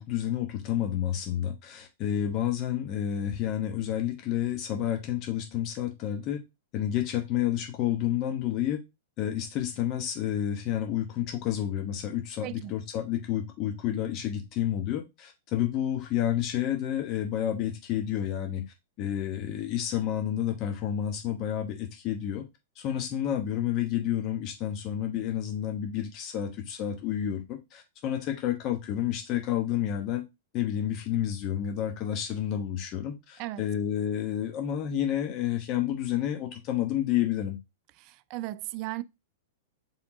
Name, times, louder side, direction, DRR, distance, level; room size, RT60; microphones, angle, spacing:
voice 1, 0.0-6.4 6.7-8.8 9.2-18.6 19.0-22.4 22.8-30.2 30.5-37.6, left 11 dB, 40° left, 1.0 m, -30 dB
voice 2, 12.4-12.7 33.4-33.6 38.0-39.0, right 17 dB, 45° right, 0.3 m, -36 dB
4.8 x 3.6 x 2.7 m
hypercardioid pair, 125°, 0 cm